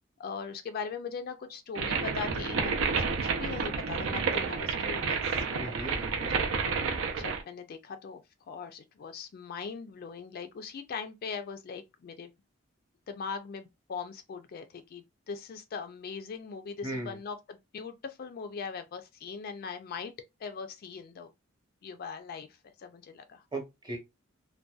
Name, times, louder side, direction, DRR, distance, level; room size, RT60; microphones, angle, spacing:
voice 1, 0.2-6.0 6.4-6.7 7.2-12.3 13.1-20.1 20.4-21.3 21.8-23.4, left 5 dB, 50° left, 0.3 m, -40 dB
sound 1, 1.7-7.4, right 5 dB, 80° right, 0.5 m, -30 dB
voice 2, 5.6-6.3 16.8-17.2 23.5-24.0, right 1 dB, 20° right, 0.8 m, -37 dB
2.6 x 2.2 x 2.3 m
head